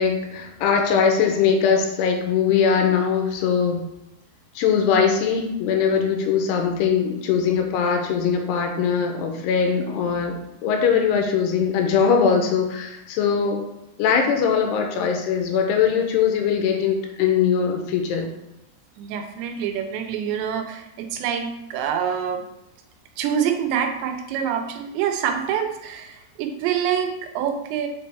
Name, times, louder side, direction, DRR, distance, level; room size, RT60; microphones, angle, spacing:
voice 1, 0.0-3.8 4.6-13.7 14.0-18.3, left 6 dB, 80° left, 4 dB, 2.6 m, -21 dB
voice 2, 19.0-22.4 23.2-27.9, right 8 dB, 85° right, 5 dB, 3.0 m, -26 dB
7.3 x 4.3 x 3.4 m, 0.88 s
omnidirectional pair, 5.0 m